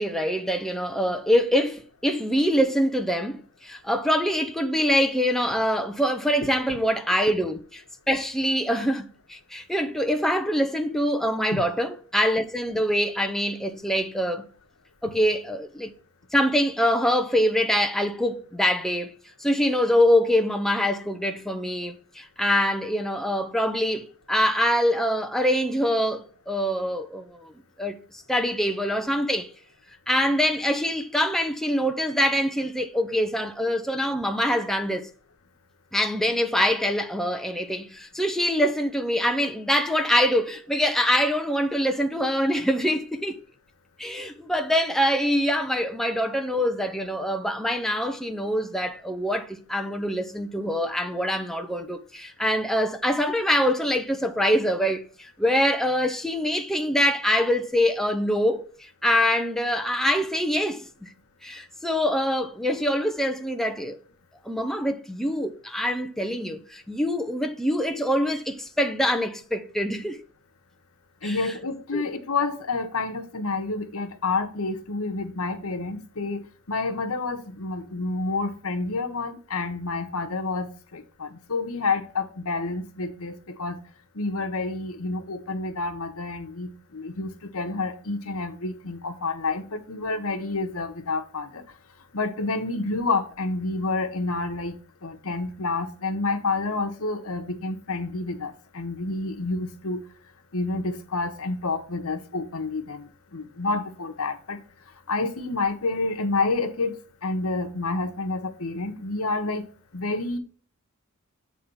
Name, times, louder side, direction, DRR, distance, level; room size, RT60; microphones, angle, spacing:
voice 1, 0.0-14.4 15.0-15.9 16.3-19.1 19.4-27.5 27.8-28.0 28.3-29.5 30.1-35.1 35.9-43.4 44.0-61.1 61.4-64.0 64.4-70.2 71.2-71.5 71.9-72.1, equal, ahead, 0.6 m, -24 dB
voice 2, 71.2-83.8 84.1-91.6 92.1-94.7 95.0-100.0 100.5-104.6 105.1-107.0 107.2-109.7 109.9-110.4, left 3 dB, 70° left, 1.1 m, -29 dB
8.4 x 3.5 x 5.5 m
head